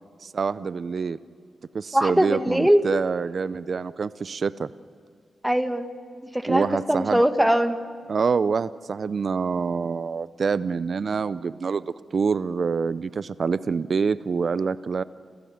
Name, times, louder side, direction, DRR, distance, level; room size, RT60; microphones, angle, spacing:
voice 1, 0.2-1.2 1.7-4.7 6.5-7.2 8.1-15.0, right 5 dB, 60° right, 17 dB, 0.5 m, -26 dB
voice 2, 1.9-2.9 5.4-5.9 6.2-7.8, equal, 5° right, 8 dB, 1.8 m, -21 dB
28.0 x 15.5 x 9.3 m, 2.3 s
supercardioid pair, 45°, 0 cm